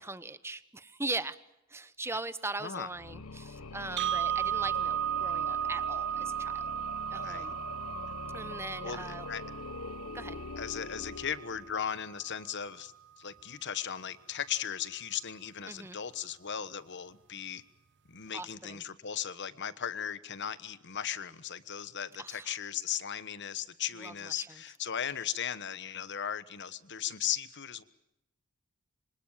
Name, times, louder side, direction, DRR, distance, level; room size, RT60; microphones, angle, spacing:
voice 1, 0.1-1.4 1.7-6.7 7.1-7.6 8.3-9.3 10.1-10.4 15.7-16.0 18.3-18.8 22.2-22.5 24.0-24.5, right 2 dB, 10° right, 15 dB, 0.9 m, -40 dB
sound 1, 2.9-12.0, left 3 dB, 70° left, 1.3 m, -43 dB
sound 2, 4.0-12.0, right 10 dB, 55° right, 0.9 m, -35 dB
voice 2, 8.8-9.4 10.6-17.6 18.1-27.8, left 9 dB, 50° left, 15 dB, 1.3 m, -37 dB
26.0 x 25.5 x 7.4 m, 0.87 s
head